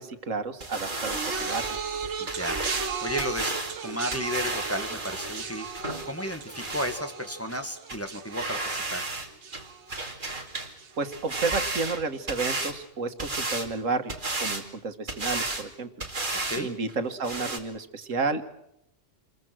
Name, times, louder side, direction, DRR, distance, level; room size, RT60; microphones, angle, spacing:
voice 1, 0.0-1.7 11.0-15.9 16.6-18.4, right 4 dB, 85° right, 8 dB, 1.9 m, -31 dB
sound 1, 0.6-7.0 7.5-7.6 7.9-8.0 8.3-9.3 9.5-10.7 11.0-12.8 13.2-13.7 14.1-14.6 15.1-15.7 16.0-16.6 16.9-17.0 17.2-17.6, right 2 dB, 40° right, 2.7 m, -33 dB
sound 2, 1.1-10.5 10.8-11.3 12.2-12.3, right 6 dB, 65° right, 1.5 m, -37 dB
voice 2, 2.2-3.5 3.8-5.7 6.0-9.0 16.3-16.7, equal, 10° left, 5 dB, 1.9 m, -33 dB
27.5 x 22.5 x 6.2 m, 0.80 s
omnidirectional pair, 1.3 m